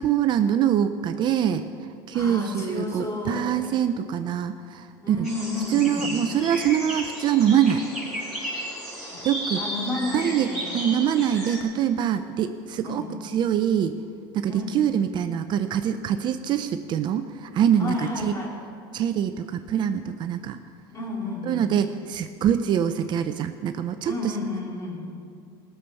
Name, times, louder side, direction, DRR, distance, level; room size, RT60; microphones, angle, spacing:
voice 1, 0.0-1.6 2.1-5.3 5.7-7.9 9.2-9.6 10.1-13.0 13.3-14.0 14.3-18.3 18.9-20.6 21.5-24.3, right 9 dB, 40° right, 9 dB, 0.5 m, -24 dB
voice 2, 2.1-3.5 5.0-6.1 9.1-9.2 9.5-10.8 12.8-13.1 14.5-14.8 17.8-18.6 20.9-21.7 24.0-25.0, left 2 dB, 25° left, -2 dB, 3.7 m, -31 dB
sound 1, 5.2-11.6, equal, ahead, 4.4 m, -34 dB
19.0 x 6.9 x 7.0 m, 2.3 s
supercardioid pair, 120°, 12 cm